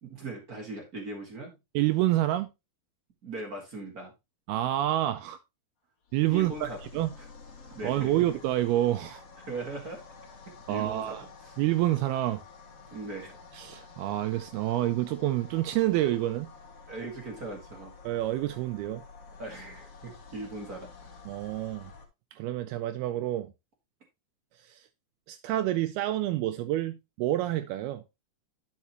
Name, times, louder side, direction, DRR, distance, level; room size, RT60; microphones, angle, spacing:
voice 1, 0.0-1.6 3.2-4.1 6.3-6.8 7.2-7.3 7.7-8.3 9.4-10.0 10.7-11.5 12.9-13.4 16.9-17.9 19.4-21.1, right 2 dB, 35° right, 1.5 m, -39 dB
voice 2, 1.7-2.5 4.5-5.4 6.1-7.1 7.8-9.2 10.7-11.3 11.6-12.4 13.5-16.5 18.0-19.0 21.3-21.9 22.3-23.5 24.6-24.8 25.3-28.0, right 14 dB, 80° right, 2.5 m, -28 dB
sound 1, 6.1-22.1, left 4 dB, 45° left, 2.5 m, -50 dB
11.0 x 5.9 x 2.9 m
omnidirectional pair, 4.5 m